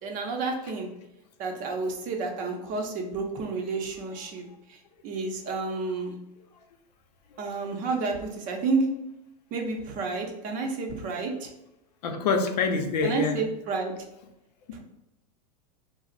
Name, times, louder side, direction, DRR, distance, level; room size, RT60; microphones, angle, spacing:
voice 1, 0.0-0.9 1.4-4.8 5.0-6.1 7.4-8.9 9.5-11.5 13.0-13.9 14.7-14.8, right 4 dB, 40° right, 2 dB, 0.6 m, -30 dB
voice 2, 12.0-13.4, left 4 dB, 75° left, 4 dB, 0.6 m, -26 dB
2.4 x 2.0 x 3.8 m, 0.88 s
hypercardioid pair, 120°, 21 cm